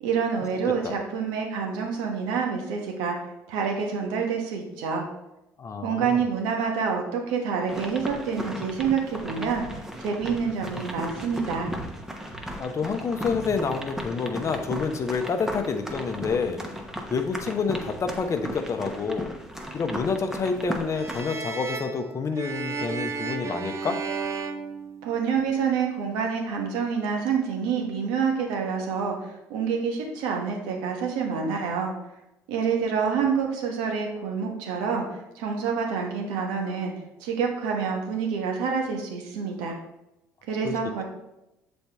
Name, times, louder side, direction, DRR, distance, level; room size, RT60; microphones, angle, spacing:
voice 1, 0.0-3.2 3.5-5.1 5.8-11.7 25.0-31.9 32.5-35.0 35.3-36.9 37.2-39.8 40.5-41.0, right 6 dB, 80° right, 2 dB, 1.2 m, -27 dB
voice 2, 5.6-6.2 12.6-16.6 17.1-19.3 19.7-24.0 40.6-40.8, left 5 dB, 40° left, 7 dB, 0.8 m, -28 dB
sound 1, 7.7-21.2, equal, 5° right, 0.9 m, -36 dB
sound 2, 20.9-25.5, right 4 dB, 40° right, 0.7 m, -33 dB
6.8 x 4.3 x 3.4 m, 0.92 s
hypercardioid pair, 65°, 8 cm